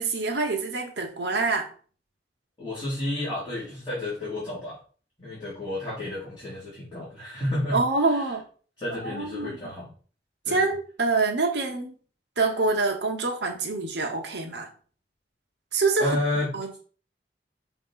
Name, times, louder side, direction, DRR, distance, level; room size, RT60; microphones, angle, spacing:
voice 1, 0.0-1.7 7.7-8.4 9.0-9.6 10.5-11.9 12.4-14.7 15.7-16.2 16.5-16.8, right 3 dB, 75° right, 2 dB, 1.1 m, -26 dB
voice 2, 2.6-4.8 5.2-7.8 8.1-8.3 8.8-9.9 10.4-10.7 16.0-16.5, left 1 dB, 25° left, -9 dB, 2.7 m, -31 dB
6.0 x 3.1 x 5.5 m, 0.42 s
head